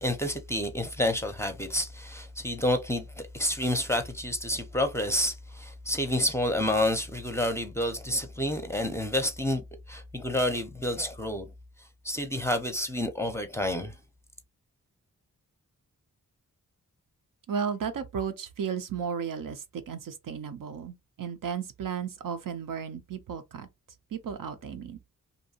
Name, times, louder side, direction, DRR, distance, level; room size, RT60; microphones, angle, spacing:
voice 1, 0.0-11.5 12.0-13.9, left 1 dB, 10° left, 0.6 m, -29 dB
voice 2, 17.5-23.7 24.1-25.0, right 7 dB, 65° right, 0.6 m, -34 dB
2.6 x 2.2 x 2.7 m
cardioid pair, 60°, 35 cm